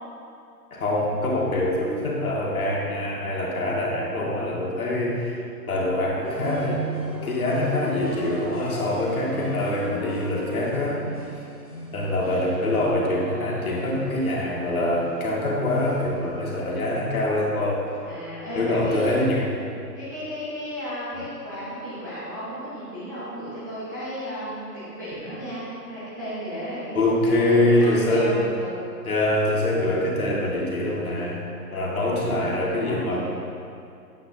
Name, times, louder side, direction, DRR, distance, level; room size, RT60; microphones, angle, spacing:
voice 1, 0.7-5.4 5.7-6.8 7.2-11.0 11.9-17.9 18.6-19.5 26.9-28.3 29.0-31.4 31.7-33.2, left 1 dB, 55° left, -3 dB, 1.9 m, -24 dB
sound 1, 6.2-16.4, right 1 dB, 25° left, 0.6 m, -38 dB
voice 2, 13.9-14.2 18.0-19.2 19.9-28.8 31.6-33.2, equal, 10° right, -14 dB, 0.7 m, -35 dB
8.3 x 8.3 x 2.7 m, 2.5 s
hypercardioid pair, 160°, 50 cm